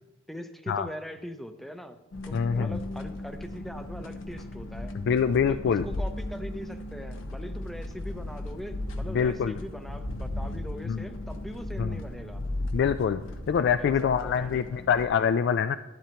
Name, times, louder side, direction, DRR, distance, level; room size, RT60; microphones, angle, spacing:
voice 1, 0.3-2.0 2.2-4.9 5.5-12.4 13.8-14.8, equal, ahead, 8 dB, 0.6 m, -41 dB
sound 1, 2.1-15.0, left 1 dB, 75° left, 0.9 m, -36 dB
voice 2, 2.3-2.8 5.1-5.9 9.1-9.5 10.9-11.0 11.8-12.0 12.7-13.2 13.5-15.8, left 7 dB, 55° left, 11 dB, 0.3 m, -25 dB
12.0 x 11.0 x 2.9 m, 1.1 s
head